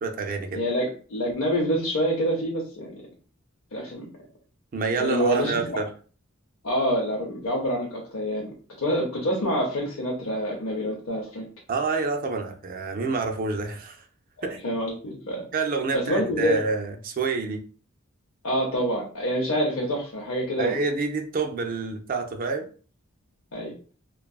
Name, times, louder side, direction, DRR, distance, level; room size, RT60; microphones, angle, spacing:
voice 1, 0.0-0.6 4.7-5.9 11.7-14.0 14.4-14.6 15.5-17.6 20.6-22.7, right 4 dB, 45° right, 5 dB, 0.4 m, -28 dB
voice 2, 0.6-3.0 3.7-4.1 5.0-5.5 6.6-8.5 8.8-11.5 14.6-15.4 15.9-16.5 18.4-20.8 23.5-23.7, equal, 85° left, -3 dB, 0.6 m, -26 dB
2.6 x 2.3 x 2.3 m, 0.39 s
head